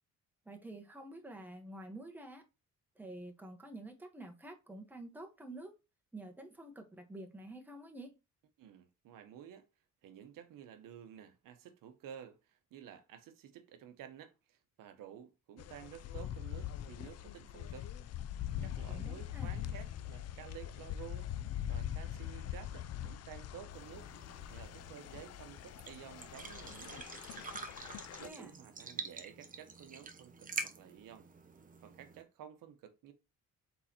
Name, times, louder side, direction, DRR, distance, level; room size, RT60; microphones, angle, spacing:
voice 1, 0.4-2.4 2.9-5.8 6.1-8.1 18.9-19.6 28.2-28.5, right 1 dB, 5° right, 1.1 m, -49 dB
voice 2, 8.6-9.7 10.0-17.9 18.6-21.3 21.7-24.1 24.5-27.1 27.7-31.3 31.8-33.1, right 9 dB, 75° right, 0.9 m, -52 dB
sound 1, 15.6-28.3, left 11 dB, 50° left, 0.4 m, -43 dB
sound 2, 23.7-32.2, right 4 dB, 25° right, 0.7 m, -47 dB
4.0 x 3.9 x 2.8 m
cardioid pair, 95°, 33 cm